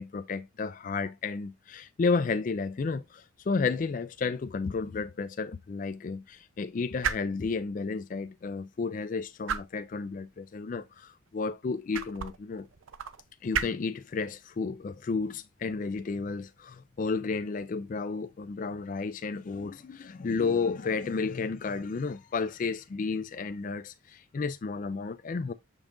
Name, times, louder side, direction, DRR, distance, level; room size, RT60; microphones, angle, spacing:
voice 1, 0.0-12.7 13.4-25.5, left 4 dB, 40° left, 0.3 m, -32 dB
sound 1, 4.0-17.6, right 7 dB, 85° right, 0.6 m, -41 dB
7.2 x 5.3 x 2.6 m
head